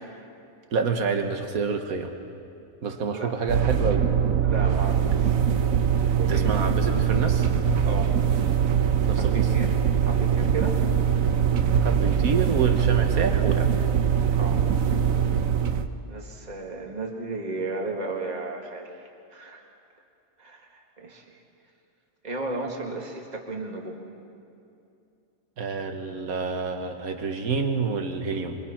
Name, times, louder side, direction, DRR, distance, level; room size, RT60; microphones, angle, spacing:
voice 1, 0.7-2.1 2.8-4.1 6.3-7.5 9.1-9.3 11.8-13.7 25.6-28.6, right 5 dB, 90° right, 5 dB, 1.7 m, -28 dB
sound 1, 3.5-15.9, right 8 dB, 70° right, 1.3 m, -22 dB
voice 2, 4.4-5.4 6.0-6.5 7.8-8.1 9.1-9.7 10.1-10.8 14.3-14.6 16.1-19.6 20.4-21.3 22.2-24.0, right 3 dB, 30° right, 1 dB, 2.0 m, -34 dB
25.0 x 24.5 x 5.8 m, 2.6 s
omnidirectional pair, 1.5 m